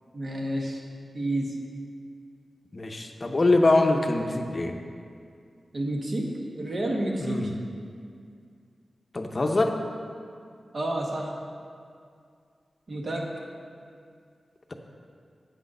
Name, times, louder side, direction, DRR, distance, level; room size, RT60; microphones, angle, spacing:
voice 1, 0.1-0.8 1.1-1.6 5.7-7.5 10.7-11.4 12.9-13.3, right 1 dB, 50° right, 0 dB, 1.1 m, -30 dB
voice 2, 2.7-4.8 7.2-7.6 9.1-9.8, left 2 dB, 35° left, 4 dB, 0.7 m, -23 dB
8.4 x 6.2 x 5.4 m, 2.3 s
wide cardioid pair, 130°, 0 cm